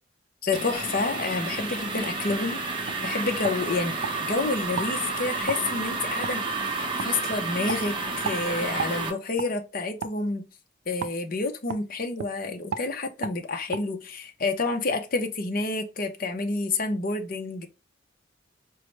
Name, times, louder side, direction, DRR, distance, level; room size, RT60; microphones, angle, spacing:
voice 1, 0.4-6.4 6.7-10.5 10.9-17.7, left 3 dB, 50° left, 0.6 m, -29 dB
sound 1, 0.5-9.1, right 3 dB, 25° right, 0.7 m, -31 dB
sound 2, 2.3-2.4 2.9-3.0 3.4-4.2 4.7-4.9 5.5-5.6 6.2-6.4 7.0-7.1 7.7-7.8 8.2-8.4 8.8-9.0 9.4-9.5 10.0-10.2 11.0-11.2 11.7-11.8 12.2-12.3 12.7-12.9 13.2-13.4 13.7-13.8, right 6 dB, 65° right, 0.3 m, -33 dB
4.6 x 2.0 x 3.1 m
head